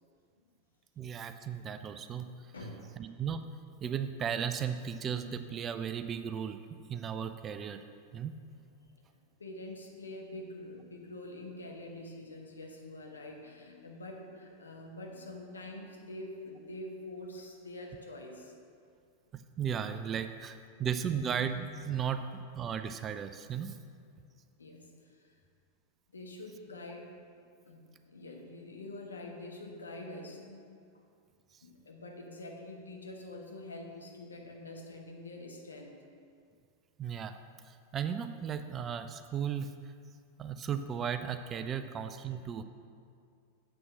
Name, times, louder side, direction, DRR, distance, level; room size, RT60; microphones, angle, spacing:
voice 1, 1.0-2.3 3.0-3.4 3.8-6.6 6.9-7.8 8.1-8.3 19.3-23.8 37.0-37.4 37.9-39.8 40.4-42.6, right 8 dB, 25° right, 9 dB, 0.4 m, -35 dB
voice 2, 2.5-2.9 9.4-18.5 24.6-25.3 26.1-27.1 27.7-30.8 31.6-36.0, left 1 dB, 75° left, 1 dB, 1.2 m, -45 dB
7.5 x 6.2 x 6.1 m, 2.3 s
figure-of-eight pair, 90°, 0 cm